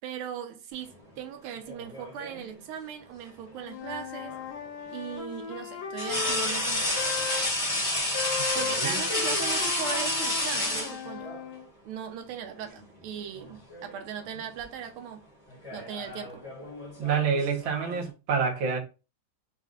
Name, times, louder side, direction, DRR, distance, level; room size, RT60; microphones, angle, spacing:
voice 1, 0.0-4.4 4.9-7.3 8.5-11.3 11.8-15.2 15.7-16.4, right 8 dB, 85° right, 1.6 m, -38 dB
sound 1, 1.7-2.5 4.3-4.4 6.0-11.4 12.6-12.8 13.2-14.0 14.3-14.6 15.5-18.1, left 1 dB, 20° left, 0.9 m, -30 dB
Wind instrument woodwind instrument, 3.5-7.4 8.1-11.7, left 7 dB, 70° left, 1.5 m, -37 dB
voice 2, 8.4-9.0 17.0-18.8, right 6 dB, 70° right, 1.8 m, -28 dB
4.4 x 2.4 x 3.7 m
omnidirectional pair, 2.3 m